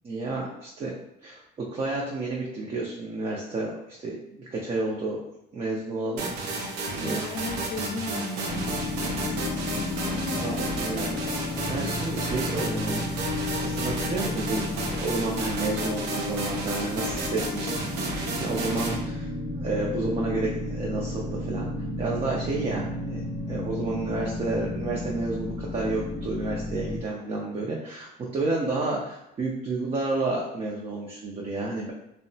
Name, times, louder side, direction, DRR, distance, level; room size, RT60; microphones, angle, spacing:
voice 1, 0.0-1.0 1.2-5.2 5.5-7.2 10.4-13.1 13.6-21.7 22.0-31.9, right 2 dB, 35° right, -3 dB, 0.5 m, -31 dB
sound 1, 6.2-19.0, right 2 dB, 90° right, 0.5 m, -32 dB
voice 2, 7.0-10.9, left 1 dB, 40° left, 3 dB, 0.5 m, -36 dB
sound 2, 8.4-27.0, left 2 dB, 5° left, 0.7 m, -33 dB
2.7 x 2.1 x 2.6 m, 0.83 s
cardioid pair, 110°, 17 cm